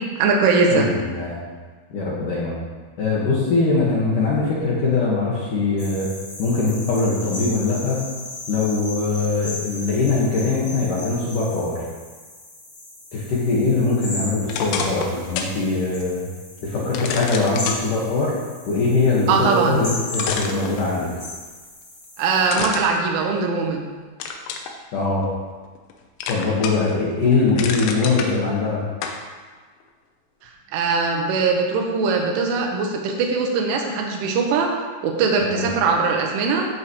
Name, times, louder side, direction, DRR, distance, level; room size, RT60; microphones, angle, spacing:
voice 1, 0.2-0.9 19.3-19.8 22.2-23.9 30.4-34.7 35.0-36.7, right 4 dB, 75° right, 1 dB, 3.6 m, -21 dB
voice 2, 0.7-1.4 1.9-2.6 3.0-6.1 6.4-8.1 8.5-11.8 13.1-16.2 16.6-18.3 18.7-21.1 24.9-25.2 26.3-28.8 35.4-35.6, left 3 dB, 55° left, -6 dB, 2.5 m, -22 dB
sound 1, 5.8-22.5, left 2 dB, 25° left, 3.3 m, -36 dB
sound 2, 14.5-15.6 16.0-16.1 16.9-17.8 19.6-19.7 20.1-21.2 22.5-23.8 24.2-24.7 25.2-25.9 26.2-26.9 27.3-28.3 29.0-29.2, left 6 dB, 80° left, 3.3 m, -29 dB
16.5 x 8.3 x 3.2 m, 1.4 s
omnidirectional pair, 5.8 m